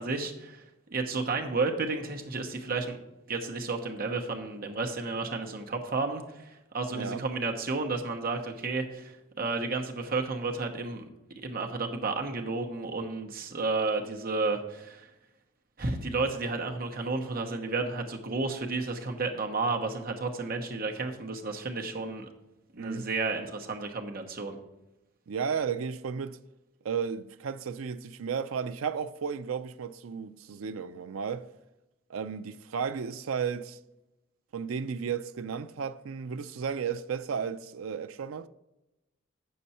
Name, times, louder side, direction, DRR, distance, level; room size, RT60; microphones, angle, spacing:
voice 1, 0.0-3.0 3.3-11.1 11.4-15.1 15.8-22.3 22.7-24.6, right 3 dB, 45° right, 1.0 m, -32 dB
voice 2, 6.9-7.2 22.8-23.1 25.3-26.4 26.8-31.4 32.1-33.8 34.5-38.5, right 6 dB, 85° right, 0.4 m, -33 dB
8.4 x 6.7 x 4.2 m
head